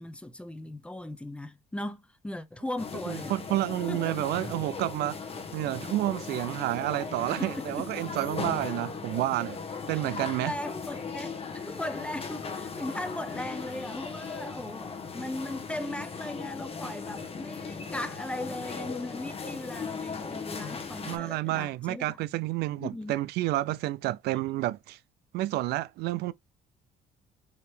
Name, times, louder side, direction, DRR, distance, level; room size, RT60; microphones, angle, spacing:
voice 1, 0.0-3.3 3.9-4.2 7.4-7.9 10.1-22.2 22.6-23.2, left 1 dB, 5° left, 0.7 m, -38 dB
sound 1, 2.8-21.2, left 5 dB, 35° left, 1.1 m, -38 dB
voice 2, 3.1-5.2 5.5-9.6 9.9-10.5 21.1-25.0 25.3-26.3, right 16 dB, 75° right, 0.4 m, -30 dB
4.7 x 3.0 x 3.2 m
cardioid pair, 110°, 17 cm